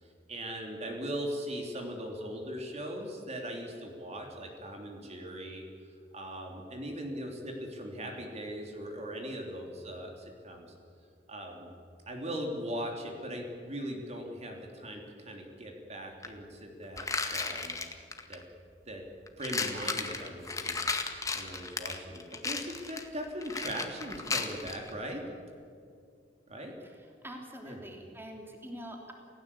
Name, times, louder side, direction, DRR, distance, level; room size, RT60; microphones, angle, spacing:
voice 1, 0.3-5.6 6.1-10.7 11.3-11.7 12.1-17.8 18.3-18.4 18.9-19.0 19.4-20.8 21.3-25.2 26.5-26.7 27.6-27.8, equal, 40° right, 2 dB, 3.2 m, -39 dB
sound 1, 16.2-16.3 17.0-18.4 19.3-24.9, left 4 dB, 20° left, 1.9 m, -34 dB
voice 2, 26.8-29.1, equal, 15° right, 1 dB, 3.2 m, -45 dB
28.5 x 17.0 x 8.5 m, 2.4 s
head